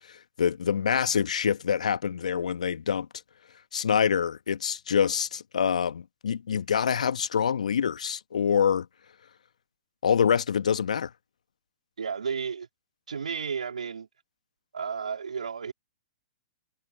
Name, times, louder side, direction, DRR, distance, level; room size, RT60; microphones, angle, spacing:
voice 1, 0.4-3.1 3.7-8.9 10.0-11.1, left 7 dB, 75° left, 1.4 m, -25 dB
voice 2, 12.0-12.7 13.1-14.1 14.7-15.7, right 6 dB, 80° right, 2.9 m, -32 dB
figure-of-eight pair, 110°, 4 cm